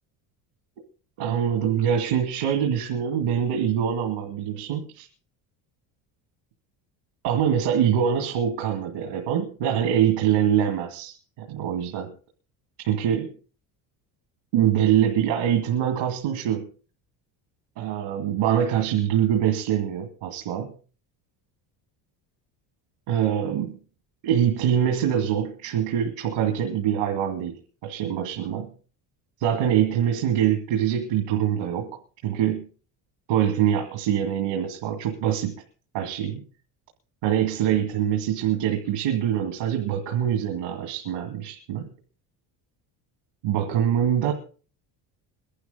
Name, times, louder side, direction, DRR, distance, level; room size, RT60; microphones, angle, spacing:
voice 1, 1.2-5.1 7.2-12.1 12.8-13.3 14.5-16.7 17.8-20.7 23.1-23.8 24.2-28.7 29.4-32.7 33.3-35.6 35.9-36.4 37.2-41.9 43.4-44.3, right 9 dB, 80° right, 5 dB, 2.3 m, -24 dB
21.5 x 11.5 x 3.9 m, 0.38 s
supercardioid pair, 90°, 49 cm